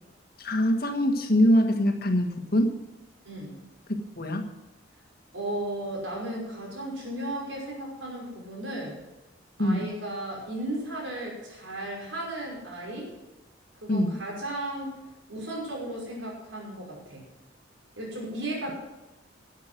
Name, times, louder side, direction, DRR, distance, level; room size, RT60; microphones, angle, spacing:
voice 1, 0.4-2.8 4.2-4.5 9.6-9.9 13.9-14.2, equal, 55° left, 4 dB, 1.6 m, -23 dB
voice 2, 3.2-3.6 5.3-9.0 9.6-13.1 13.8-15.0 15.3-17.2 18.0-18.7, right 1 dB, 90° right, -2 dB, 5.8 m, -35 dB
12.0 x 8.5 x 7.7 m, 0.97 s
head